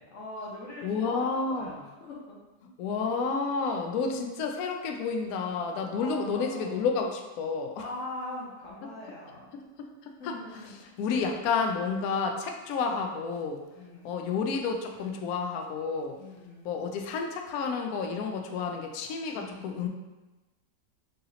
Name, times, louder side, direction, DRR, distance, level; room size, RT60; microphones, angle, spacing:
voice 1, 0.0-2.4 2.6-2.7 5.9-6.9 7.8-9.6 10.2-11.0 13.7-14.2 16.2-16.7 19.3-19.8, left 2 dB, 50° left, -4 dB, 1.2 m, -42 dB
voice 2, 0.8-1.8 2.8-7.8 9.5-10.3 11.0-13.6 14.0-16.2 16.6-19.9, left 5 dB, 70° left, 3 dB, 0.9 m, -30 dB
4.0 x 2.8 x 3.8 m, 1.1 s
omnidirectional pair, 1.9 m